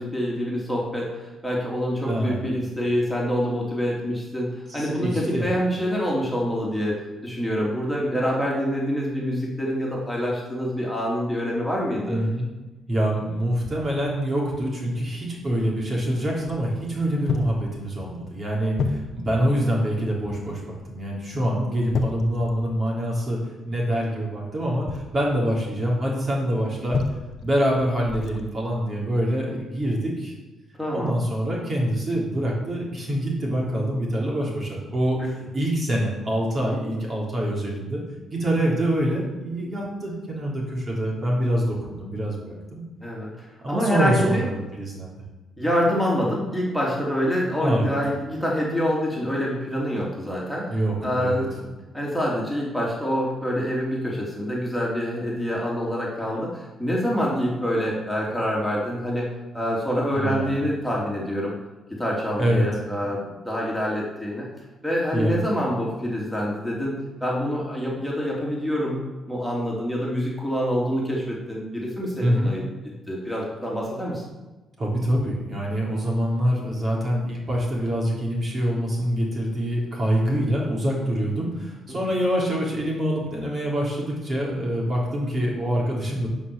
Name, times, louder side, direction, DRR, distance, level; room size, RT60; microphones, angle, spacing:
voice 1, 0.0-4.5 4.7-7.0 7.2-12.2 21.7-21.8 30.8-31.1 35.2-35.3 43.0-44.4 45.6-50.6 51.0-51.6 51.9-59.3 59.5-61.5 61.9-64.5 64.8-66.9 67.2-69.0 69.3-72.6 73.1-74.2, equal, 5° left, -4 dB, 2.9 m, -26 dB
voice 2, 2.1-2.4 4.7-5.5 12.1-12.5 12.9-23.4 23.7-27.0 27.4-30.3 30.9-38.0 38.3-42.8 43.6-45.2 47.6-47.9 50.7-51.4 60.2-60.6 62.4-62.7 65.1-65.4 72.2-72.5 74.8-86.3, equal, 35° right, -3 dB, 3.4 m, -25 dB
sound 1, 13.6-13.9 14.5-14.6 15.5-15.7 16.4-17.0 17.2-17.7 18.0-18.3 18.8-19.5 20.7-21.0 21.3-21.5 21.9-23.1 24.7-25.7 26.9-27.6 28.1-28.5 29.0-29.2, left 4 dB, 65° left, 1.1 m, -31 dB
10.5 x 5.0 x 6.8 m, 1.1 s
cardioid pair, 90°, 0 cm